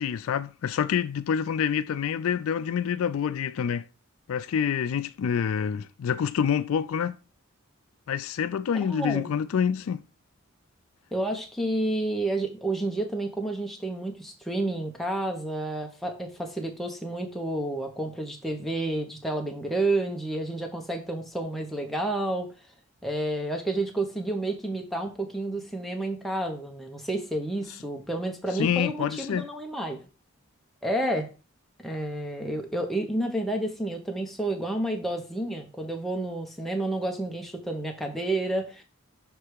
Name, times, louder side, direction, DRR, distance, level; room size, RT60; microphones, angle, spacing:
voice 1, 0.0-3.8 4.3-7.2 8.1-10.0 28.5-29.5, left 7 dB, 70° left, 0.3 m, -27 dB
voice 2, 8.9-9.3 11.1-22.5 23.0-30.1 30.8-31.3 31.8-38.8, right 1 dB, ahead, 0.8 m, -30 dB
6.5 x 3.3 x 4.8 m
head